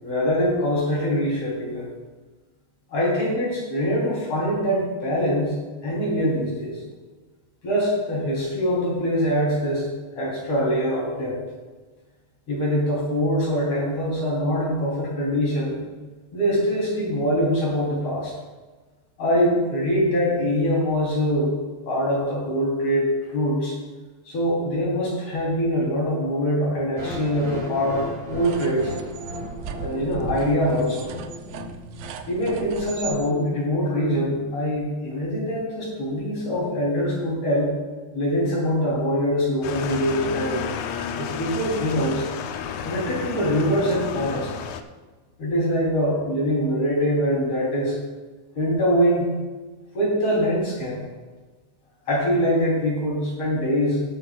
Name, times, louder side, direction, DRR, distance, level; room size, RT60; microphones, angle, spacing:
voice 1, 0.0-1.9 2.9-5.6 5.8-6.8 7.6-9.9 10.2-11.4 12.5-15.8 16.3-18.3 19.2-23.7 24.3-28.9 29.8-31.1 32.3-37.7 38.1-40.7 41.2-42.3 42.8-44.5 45.4-48.0 48.5-49.3 49.9-51.0 52.1-54.0, equal, 50° left, -5 dB, 4.3 m, -23 dB
sound 1, 27.0-33.0, equal, 25° right, 2.8 m, -36 dB
sound 2, 28.3-33.2, right 7 dB, 90° right, 2.3 m, -38 dB
sound 3, 39.6-44.8, left 7 dB, 90° left, 1.5 m, -32 dB
19.0 x 8.9 x 2.3 m, 1.3 s
omnidirectional pair, 3.8 m